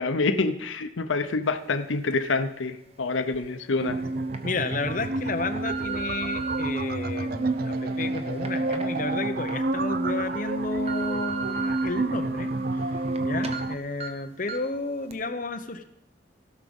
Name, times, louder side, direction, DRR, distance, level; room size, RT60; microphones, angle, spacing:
voice 1, 0.0-4.0, left 3 dB, 90° left, 9 dB, 0.7 m, -27 dB
sound 1, 3.3-3.4 4.1-4.4 5.0-6.6 7.3-9.6 10.0-10.1 10.5-11.8 12.3-13.2 13.4-13.6 14.0-14.1 14.5-14.8 15.1-15.2, right 6 dB, 35° right, 1.0 m, -37 dB
sound 2, 3.8-13.8, right 2 dB, 50° right, 0.5 m, -29 dB
voice 2, 4.4-15.8, left 3 dB, 45° left, 6 dB, 0.9 m, -32 dB
16.5 x 6.3 x 5.4 m, 0.84 s
head